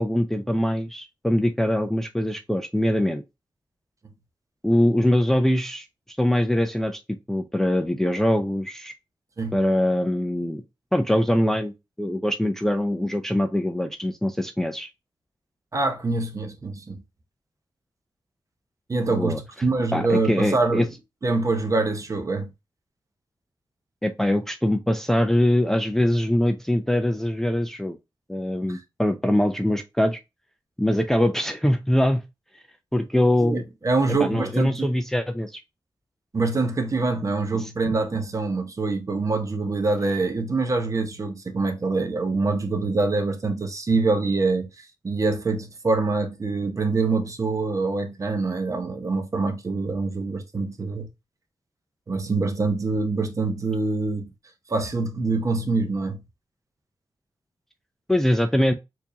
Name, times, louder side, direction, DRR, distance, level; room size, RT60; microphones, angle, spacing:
voice 1, 0.0-3.2 4.6-5.9 6.2-7.0 7.3-8.9 9.5-10.6 10.9-14.9 19.2-19.4 19.9-20.9 24.0-28.0 28.3-30.2 30.8-32.2 32.9-33.6 34.2-35.6 37.5-37.7 58.1-58.7, left 1 dB, 5° left, 0.5 m, -23 dB
voice 2, 15.7-17.0 18.9-20.9 21.2-22.5 28.7-28.8 33.4-34.9 36.3-51.1 52.1-54.3 54.7-56.2, right 3 dB, 40° right, 0.9 m, -25 dB
4.4 x 2.7 x 2.7 m
cardioid pair, 85°, 9 cm